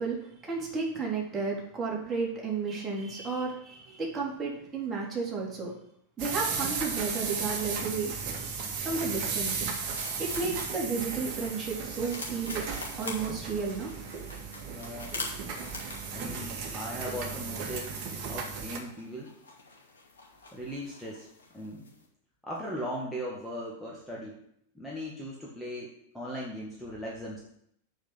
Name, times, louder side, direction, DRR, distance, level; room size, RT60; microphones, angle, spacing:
voice 1, 0.0-5.7 6.2-8.5 8.8-9.8 10.2-13.9, right 4 dB, 20° right, -3 dB, 3.5 m, -33 dB
sound 1, 6.2-18.8, right 5 dB, 40° right, 2.1 m, -35 dB
sound 2, 9.2-22.1, left 3 dB, 70° left, 2.4 m, -46 dB
voice 2, 14.6-15.2 16.1-18.0 18.3-19.3 20.5-21.3 21.5-21.9 22.4-24.4 24.7-27.4, equal, ahead, -5 dB, 2.1 m, -38 dB
7.1 x 6.5 x 7.7 m, 0.71 s
figure-of-eight pair, 90°, 0 cm